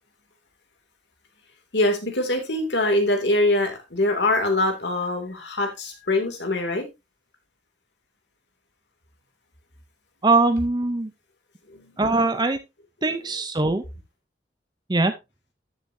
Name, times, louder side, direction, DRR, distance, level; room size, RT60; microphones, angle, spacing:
voice 1, 1.7-6.9 11.7-11.9 12.3-12.4, left 1 dB, 75° left, 4 dB, 2.8 m, -23 dB
voice 2, 10.2-11.1 12.0-12.6 13.0-13.8 14.9-15.1, right 3 dB, 25° right, 9 dB, 0.7 m, -21 dB
13.0 x 7.1 x 2.8 m, 0.23 s
head